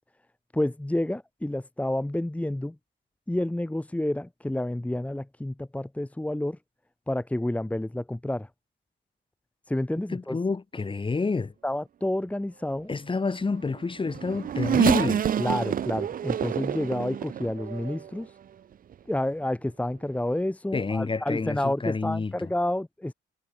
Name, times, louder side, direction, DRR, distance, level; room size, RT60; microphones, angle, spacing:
voice 1, 0.5-2.7 3.3-6.6 7.1-8.5 9.7-10.4 11.6-12.9 15.4-18.3 19.1-23.1, left 1 dB, 5° left, 1.6 m, -29 dB
voice 2, 10.1-11.5 12.9-15.2 20.7-22.5, left 4 dB, 25° left, 2.2 m, -28 dB
Race car auto racing / Accelerating revving vroom, 13.7-18.2 18.9-19.0 20.2-20.3, right 9 dB, 45° right, 0.6 m, -28 dB
cardioid pair, 90°, 20 cm